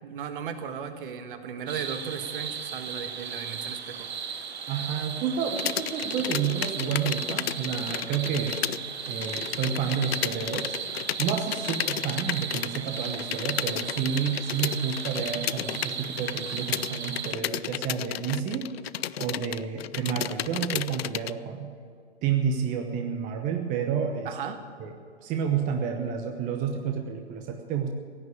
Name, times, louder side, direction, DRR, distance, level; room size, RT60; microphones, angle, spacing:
voice 1, 0.0-4.1 24.2-24.6, right 7 dB, 50° right, 8 dB, 1.6 m, -36 dB
sound 1, 1.7-17.3, right 7 dB, 65° right, 1.3 m, -36 dB
voice 2, 4.7-8.6 9.1-10.7 11.2-18.7 19.2-21.7 22.2-24.3 24.8-24.9 25.2-27.9, right 7 dB, 25° right, 4 dB, 1.1 m, -30 dB
sound 2, 5.6-8.8 9.1-21.3, left 11 dB, 60° left, 0.5 m, -33 dB
16.5 x 9.5 x 8.7 m, 2.2 s
hypercardioid pair, 125°, 34 cm